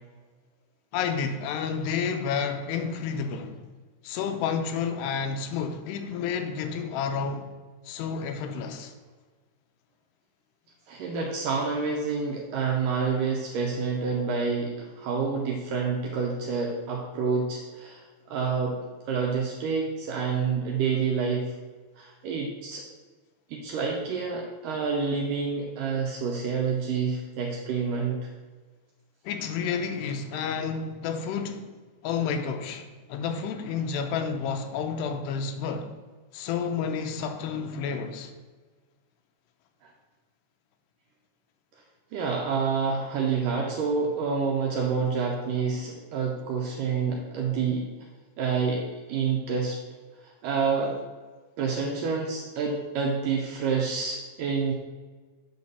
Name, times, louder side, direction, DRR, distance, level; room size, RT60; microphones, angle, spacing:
voice 1, 0.9-3.6 4.0-7.5 7.8-8.9 29.2-31.7 32.0-35.9 36.3-38.3, left 6 dB, 85° left, 2.7 m, -30 dB
voice 2, 10.9-18.8 19.1-21.5 22.0-22.8 23.5-28.3 39.8-39.9 42.1-47.9 48.4-49.8 50.2-51.0 51.6-54.7, right 5 dB, 80° right, 1.9 m, -28 dB
8.2 x 4.0 x 6.7 m
omnidirectional pair, 4.8 m